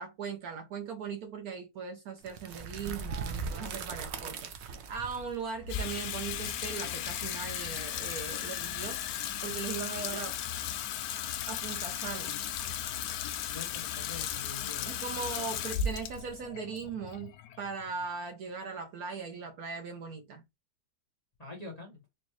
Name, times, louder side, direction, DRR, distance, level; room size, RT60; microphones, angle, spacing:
voice 1, 0.0-9.0 9.4-10.3 11.5-12.4 14.9-20.4, right 5 dB, 65° right, 1.0 m, -39 dB
sound 1, 2.2-8.0, right 5 dB, 80° right, 0.6 m, -40 dB
Water tap faucet / Sink (filling or washing), 5.6-18.0, left 8 dB, 75° left, 1.1 m, -36 dB
voice 2, 13.5-15.5 21.4-22.0, left 3 dB, 25° left, 1.1 m, -45 dB
4.4 x 2.6 x 3.1 m
omnidirectional pair, 1.9 m